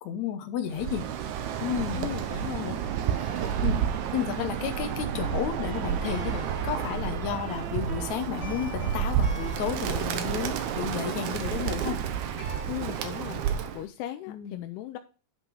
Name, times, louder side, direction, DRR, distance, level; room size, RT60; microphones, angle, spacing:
voice 1, 0.0-1.0 1.6-2.1 2.7-2.8 3.6-3.8 4.1-12.0 14.3-14.7, left 9 dB, 70° left, 6 dB, 1.8 m, -32 dB
Bird, 0.7-13.8, right 8 dB, 90° right, 1.6 m, -30 dB
voice 2, 2.0-2.8 12.7-15.0, left 14 dB, 85° left, 7 dB, 2.7 m, -37 dB
sound 1, 3.1-11.1, right 5 dB, 65° right, 1.5 m, -46 dB
sound 2, 6.1-12.6, left 2 dB, 50° left, 1.3 m, -47 dB
9.5 x 5.2 x 4.8 m, 0.36 s
omnidirectional pair, 4.6 m